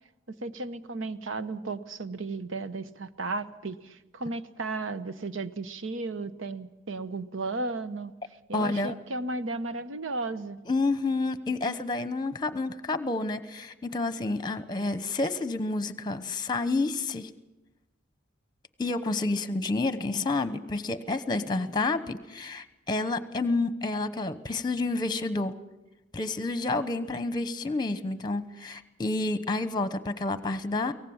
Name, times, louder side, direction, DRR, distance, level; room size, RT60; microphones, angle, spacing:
voice 1, 0.3-8.1 8.5-10.6, right 3 dB, 75° right, 12 dB, 0.9 m, -34 dB
voice 2, 8.5-8.9 10.7-17.3 18.8-25.5 26.1-30.9, left 3 dB, 20° left, 13 dB, 1.0 m, -29 dB
23.5 x 18.0 x 7.3 m, 1.0 s
head